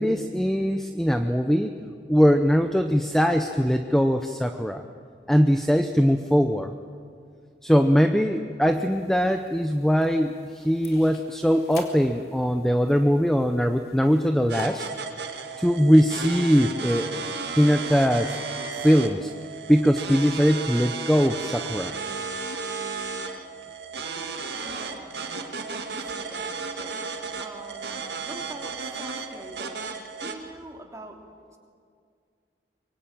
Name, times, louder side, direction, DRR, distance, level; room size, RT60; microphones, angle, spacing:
voice 1, 0.0-1.7 2.1-4.8 5.3-6.7 7.6-14.9 15.6-17.2 17.6-18.4 18.8-19.3 19.7-21.9, equal, ahead, 6 dB, 0.8 m, -21 dB
sound 1, 8.8-14.6, left 4 dB, 60° left, 3.2 m, -49 dB
sound 2, 14.5-30.3, right 4 dB, 70° right, 2.2 m, -34 dB
voice 2, 24.6-25.1 25.7-29.8 30.2-31.2 31.5-31.6, right 1 dB, 15° right, 1 dB, 3.1 m, -44 dB
24.5 x 23.0 x 9.2 m, 2.2 s
head